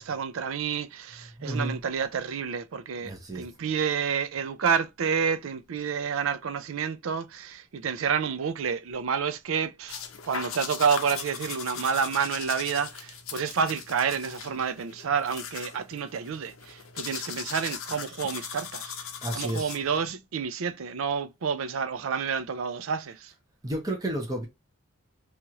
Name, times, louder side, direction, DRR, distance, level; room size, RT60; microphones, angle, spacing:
voice 1, 0.0-18.9 19.3-23.3, right 6 dB, 75° right, 0.4 m, -29 dB
voice 2, 1.4-1.8 3.0-3.4 19.2-19.7 23.6-24.5, right 1 dB, 20° right, 0.7 m, -31 dB
sound 1, 9.9-20.1, left 7 dB, 90° left, 0.6 m, -39 dB
3.0 x 2.4 x 2.8 m
head